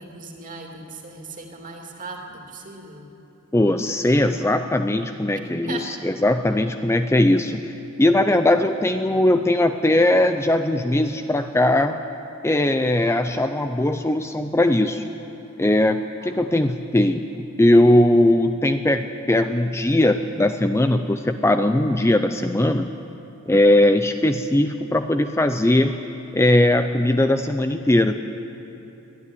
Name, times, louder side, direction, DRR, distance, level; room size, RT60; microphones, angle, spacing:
voice 1, 0.0-3.1 5.3-5.9 16.2-16.3, right 3 dB, 40° right, 1 dB, 2.6 m, -38 dB
voice 2, 3.5-7.7 8.0-12.0 12.4-15.1 15.6-22.9 23.5-26.0 26.3-28.3, left 1 dB, 10° left, 8 dB, 0.5 m, -19 dB
24.0 x 13.0 x 9.8 m, 3.0 s
head